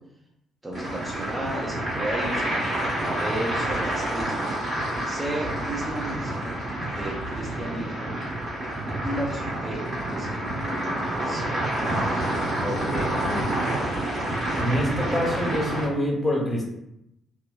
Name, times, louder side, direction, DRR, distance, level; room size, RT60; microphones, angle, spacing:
voice 1, 0.6-4.5 5.1-8.1 9.0-11.5 13.4-13.6, right 1 dB, 20° right, -2 dB, 0.5 m, -34 dB
sound 1, 0.7-15.8, right 1 dB, 40° right, 1.3 m, -28 dB
voice 2, 12.6-13.7 14.6-16.6, left 1 dB, 25° left, -2 dB, 0.7 m, -27 dB
2.8 x 2.2 x 2.3 m, 0.82 s
figure-of-eight pair, 40°, 0 cm